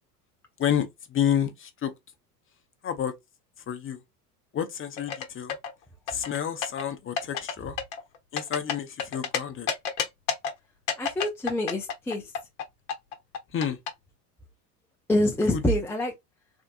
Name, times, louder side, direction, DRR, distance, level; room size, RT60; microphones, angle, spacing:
voice 1, 0.6-1.9 2.8-3.1 3.7-4.0 4.5-5.6 6.1-7.8 8.3-9.7 13.5-13.8 15.5-15.6, left 9 dB, 25° left, 0.8 m, -29 dB
sound 1, 5.0-5.7 6.1-6.8 7.2-7.5 7.8-9.4 9.7-10.5 10.9-12.6 12.9-13.9, left 7 dB, 55° left, 1.0 m, -29 dB
voice 2, 11.0-12.2 15.1-16.1, left 1 dB, 5° left, 0.4 m, -26 dB
3.6 x 2.5 x 2.4 m
figure-of-eight pair, 75°, 49 cm